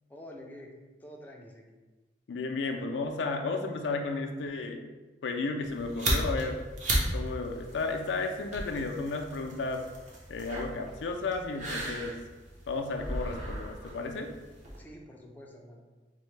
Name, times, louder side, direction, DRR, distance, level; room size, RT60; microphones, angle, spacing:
voice 1, 0.1-0.7 1.0-1.8 14.8-15.8, equal, 10° left, -1 dB, 0.4 m, -48 dB
voice 2, 2.3-4.8 5.2-6.6 7.1-9.8 10.3-12.2 12.7-14.3, left 3 dB, 85° left, 3 dB, 0.4 m, -33 dB
sound 1, 5.6-14.8, right 1 dB, 45° right, 0.8 m, -35 dB
4.2 x 2.1 x 3.1 m, 1.2 s
head